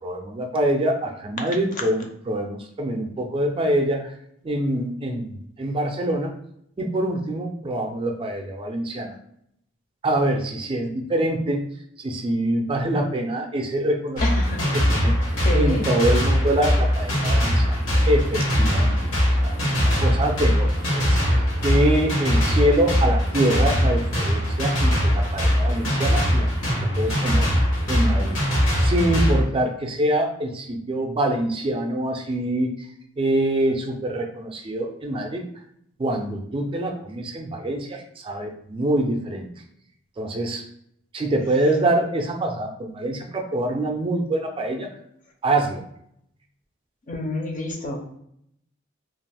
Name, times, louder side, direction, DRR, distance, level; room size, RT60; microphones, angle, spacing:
voice 1, 0.0-4.1 4.4-6.3 6.8-9.1 10.0-11.7 12.0-14.2 14.7-17.8 18.1-19.1 19.3-26.5 27.0-28.4 28.8-32.7 33.2-35.4 36.0-39.5 40.2-40.6 41.1-44.9 45.4-45.8, right 1 dB, 25° right, 3 dB, 0.4 m, -25 dB
sound 1, 14.2-29.4, equal, 80° left, 1.1 m, -21 dB
voice 2, 14.2-14.6 15.4-15.8 47.1-48.2, left 1 dB, 40° left, 2 dB, 0.5 m, -28 dB
2.4 x 2.4 x 3.3 m, 0.73 s
head